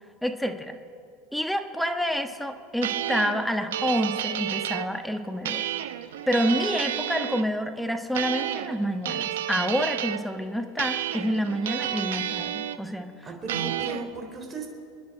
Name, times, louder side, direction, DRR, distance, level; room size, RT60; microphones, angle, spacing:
voice 1, 0.2-0.8 1.3-5.6 6.3-13.2, equal, ahead, 6 dB, 1.3 m, -28 dB
sound 1, 2.8-4.9 5.4-7.4 8.1-8.8 9.0-10.2 10.8-12.8 13.5-14.0, right 11 dB, 80° right, 0.8 m, -30 dB
voice 2, 13.2-14.7, right 3 dB, 25° right, 3 dB, 3.7 m, -36 dB
28.5 x 10.0 x 4.9 m, 2.5 s
hypercardioid pair, 100°, 0 cm